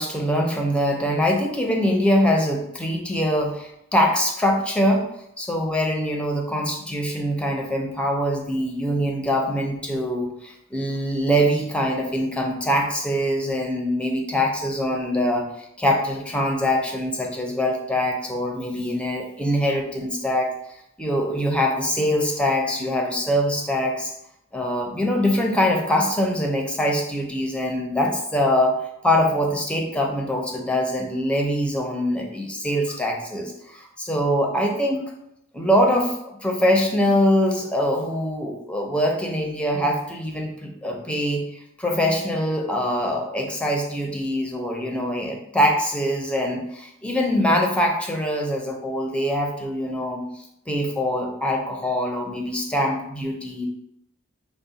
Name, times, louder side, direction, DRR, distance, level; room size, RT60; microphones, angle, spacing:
voice 1, 0.0-5.1 5.4-20.5 21.0-24.1 24.5-35.1 35.5-53.7, equal, 5° left, 1 dB, 0.6 m, -23 dB
5.8 x 2.1 x 4.0 m, 0.78 s
head